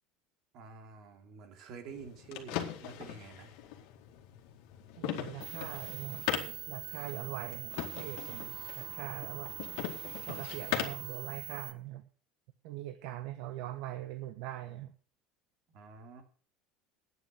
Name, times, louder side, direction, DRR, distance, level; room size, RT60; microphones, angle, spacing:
voice 1, 0.5-3.5 15.7-16.2, right 5 dB, 55° right, 5 dB, 2.9 m, -48 dB
sound 1, 1.9-11.1, left 11 dB, 70° left, 2.1 m, -40 dB
voice 2, 5.0-9.5 10.3-12.0 12.6-14.9, right 13 dB, 70° right, 10 dB, 0.9 m, -42 dB
sound 2, 5.4-11.7, right 16 dB, 85° right, 1.4 m, -43 dB
sound 3, 7.7-11.3 11.9-12.0, right 1 dB, 30° right, 3.7 m, -59 dB
9.3 x 9.2 x 6.8 m, 0.42 s
supercardioid pair, 130°, 0 cm